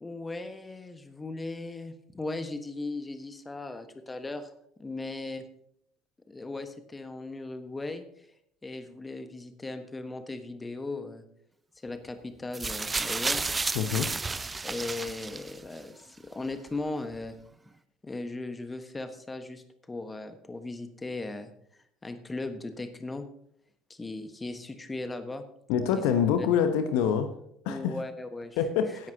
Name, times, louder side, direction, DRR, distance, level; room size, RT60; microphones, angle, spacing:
voice 1, 0.0-4.5 4.8-5.5 6.3-8.3 8.6-11.2 11.8-13.4 14.6-17.3 18.0-21.5 22.0-23.2 23.9-25.4 25.9-26.0 26.4-26.5 27.7-29.1, left 2 dB, 15° left, 9 dB, 1.4 m, -37 dB
sound 1, 12.5-15.8 16.7-16.8, right 3 dB, 20° right, 0.6 m, -32 dB
voice 2, 13.7-14.1 25.7-27.3 27.6-28.0 28.6-29.1, left 8 dB, 60° left, 9 dB, 1.1 m, -25 dB
16.5 x 10.5 x 2.9 m, 0.70 s
figure-of-eight pair, 60°, 0 cm